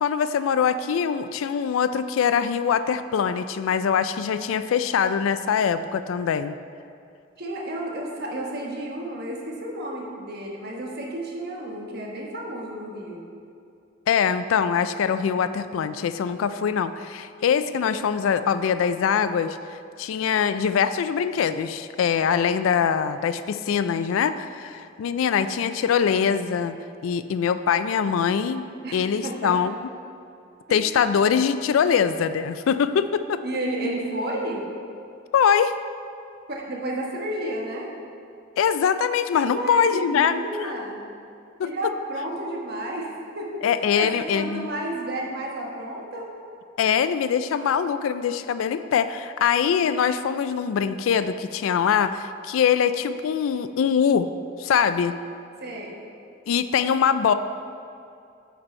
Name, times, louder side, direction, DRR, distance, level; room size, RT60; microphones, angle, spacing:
voice 1, 0.0-6.6 14.1-26.8 27.0-28.7 28.9-29.7 30.7-33.4 35.3-35.7 38.6-40.3 40.6-40.7 41.6-41.7 43.6-44.7 46.8-54.3 54.6-55.2 56.5-57.3, left 7 dB, 85° left, 12 dB, 0.3 m, -23 dB
voice 2, 7.4-13.2 28.8-28.9 29.2-29.6 30.7-30.8 33.4-34.6 36.5-37.9 39.5-41.0 41.6-46.3 55.6-56.0, right 1 dB, 55° right, -1 dB, 1.2 m, -31 dB
9.2 x 4.4 x 4.3 m, 2.5 s
head